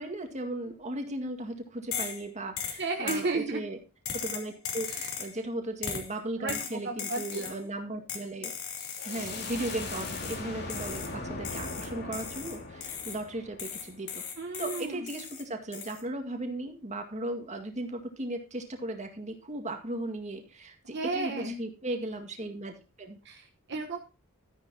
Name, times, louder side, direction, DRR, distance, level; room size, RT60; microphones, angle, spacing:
voice 1, 0.0-3.8 4.1-4.9 5.2-8.5 9.0-14.2 14.6-22.7 23.0-23.2, right 1 dB, 35° right, 4 dB, 2.0 m, -36 dB
sound 1, 1.9-2.2 2.6-3.3 4.0-5.4 5.8-6.1 6.5-7.6 8.1-10.4 10.7-11.1 11.4-13.2 13.6-15.4 15.7-16.0, left 7 dB, 80° left, 2.6 m, -38 dB
voice 2, 2.8-3.6 4.9-5.1 6.4-6.5 6.8-7.5 14.4-15.0 20.9-21.6 23.2-24.0, right 3 dB, 55° right, 1 dB, 1.3 m, -33 dB
sound 2, 8.8-14.3, left 2 dB, 50° left, 2.6 m, -40 dB
13.0 x 10.0 x 2.9 m, 0.31 s
head